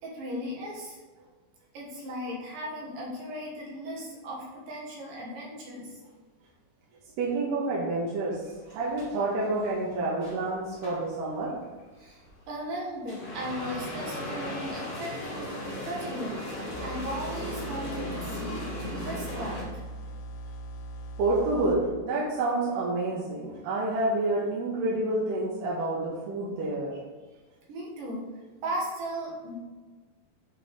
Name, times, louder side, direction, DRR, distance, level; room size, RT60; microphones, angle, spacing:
voice 1, 0.0-1.0 1.7-6.0 12.0-19.7 27.7-28.3 28.6-29.6, equal, 65° right, -4 dB, 2.5 m, -37 dB
voice 2, 7.2-8.4 8.7-11.5 21.2-27.0, right 2 dB, 80° right, -6 dB, 2.8 m, -28 dB
sound 1, 8.3-19.6, left 1 dB, 50° left, 2.0 m, -37 dB
sound 2, 16.7-21.7, right 1 dB, 90° left, 2.8 m, -40 dB
7.6 x 4.0 x 3.3 m, 1.3 s
omnidirectional pair, 4.7 m